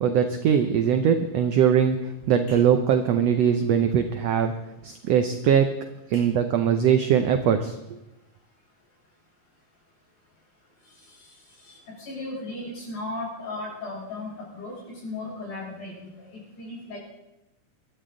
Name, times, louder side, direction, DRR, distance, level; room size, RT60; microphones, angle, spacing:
voice 1, 0.0-4.5 4.8-5.7 6.1-7.8, right 8 dB, 80° right, 7 dB, 1.4 m, -21 dB
voice 2, 11.6-14.7 15.0-15.9 16.2-17.0, left 2 dB, 65° left, -5 dB, 8.2 m, -36 dB
24.0 x 12.5 x 3.8 m, 0.92 s
omnidirectional pair, 3.9 m